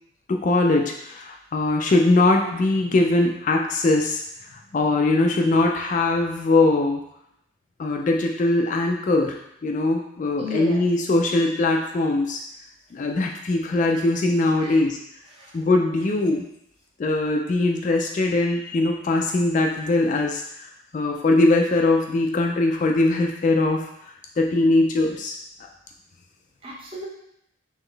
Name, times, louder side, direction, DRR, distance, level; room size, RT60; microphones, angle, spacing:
voice 1, 0.3-4.2 4.5-7.0 7.8-9.4 9.6-12.4 12.9-15.0 15.5-16.4 17.0-23.8 24.4-25.4, left 2 dB, 40° left, 2 dB, 0.3 m, -21 dB
voice 2, 10.4-10.8 14.6-14.8 15.3-15.6 26.6-27.1, left 3 dB, 25° right, -4 dB, 0.8 m, -35 dB
3.8 x 3.0 x 3.2 m, 0.77 s
head